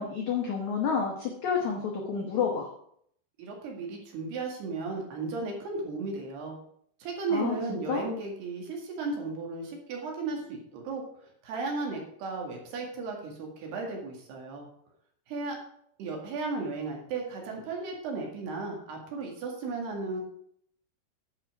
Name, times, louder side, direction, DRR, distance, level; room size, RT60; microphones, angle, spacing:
voice 1, 0.0-2.7 7.3-8.1, left 6 dB, 85° left, 0 dB, 1.6 m, -30 dB
voice 2, 3.4-6.6 7.0-11.0 11.4-14.7 15.3-15.6 16.0-20.2, right 3 dB, 60° right, 1 dB, 3.7 m, -35 dB
10.5 x 5.8 x 6.0 m, 0.66 s
omnidirectional pair, 5.6 m